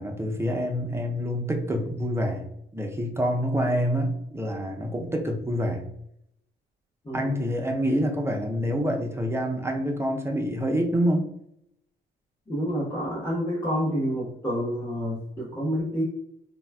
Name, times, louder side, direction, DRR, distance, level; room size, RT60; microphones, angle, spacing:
voice 1, 0.0-2.4 2.7-5.8 7.1-11.3, equal, 15° right, 1 dB, 0.5 m, -27 dB
voice 2, 12.5-16.0, equal, 15° left, -8 dB, 0.9 m, -28 dB
3.3 x 2.3 x 2.2 m, 0.75 s
cardioid pair, 90°, 20 cm